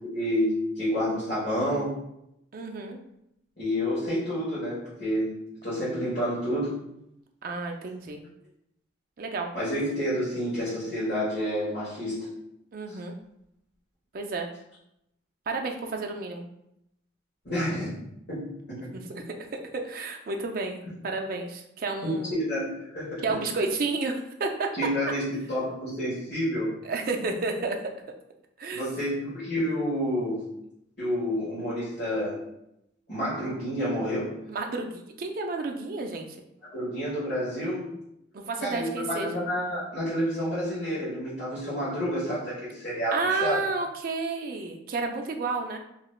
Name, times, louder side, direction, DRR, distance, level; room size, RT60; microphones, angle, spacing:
voice 1, 0.1-2.0 3.6-6.8 9.5-12.3 12.9-13.0 17.4-17.9 18.3-18.5 18.8-18.9 22.0-22.7 22.9-23.4 24.7-26.7 28.7-30.5 31.0-32.4 33.1-34.4 36.7-38.0 38.6-43.6, equal, 55° left, -12 dB, 1.3 m, -29 dB
voice 2, 2.5-3.0 7.4-8.2 9.2-9.5 12.7-13.2 14.1-14.5 15.5-16.5 18.9-19.5 19.7-22.3 23.2-24.7 26.8-27.8 28.6-28.8 34.5-36.4 38.3-39.4 43.1-45.8, right 3 dB, 45° right, 3 dB, 0.4 m, -31 dB
3.1 x 2.9 x 2.3 m, 0.81 s
head